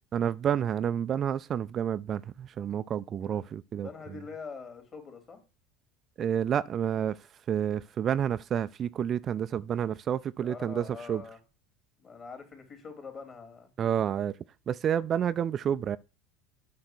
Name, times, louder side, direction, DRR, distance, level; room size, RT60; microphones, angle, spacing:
voice 1, 0.1-3.9 6.2-7.2 7.5-11.2 13.8-14.4 14.7-16.0, right 9 dB, 40° right, 0.4 m, -29 dB
voice 2, 3.8-5.4 10.4-11.4 12.0-13.7, left 5 dB, 35° left, 3.3 m, -44 dB
8.0 x 5.6 x 6.3 m
supercardioid pair, 100°, 0 cm